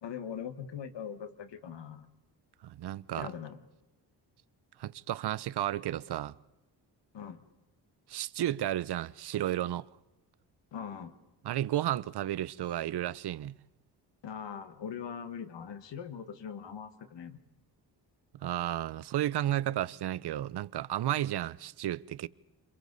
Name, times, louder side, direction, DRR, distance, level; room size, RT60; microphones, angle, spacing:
voice 1, 0.0-2.1 3.2-3.6 7.1-7.5 10.7-11.2 14.2-17.4, left 7 dB, 75° left, 1.6 m, -41 dB
voice 2, 2.6-3.3 4.8-6.4 8.1-9.9 11.4-13.6 18.3-22.3, right 12 dB, 65° right, 0.6 m, -33 dB
28.5 x 23.0 x 4.0 m
cardioid pair, 75°, 43 cm